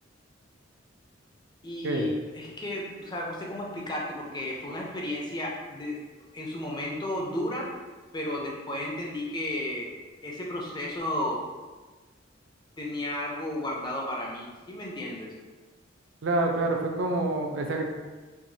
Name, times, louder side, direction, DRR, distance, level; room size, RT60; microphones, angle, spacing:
voice 1, 1.6-6.1 6.3-7.7 8.1-9.9 10.2-11.4 12.8-15.3, left 1 dB, 20° left, -2 dB, 0.5 m, -33 dB
voice 2, 16.2-17.8, right 2 dB, 70° right, 2 dB, 0.5 m, -27 dB
4.6 x 2.4 x 2.7 m, 1.3 s
head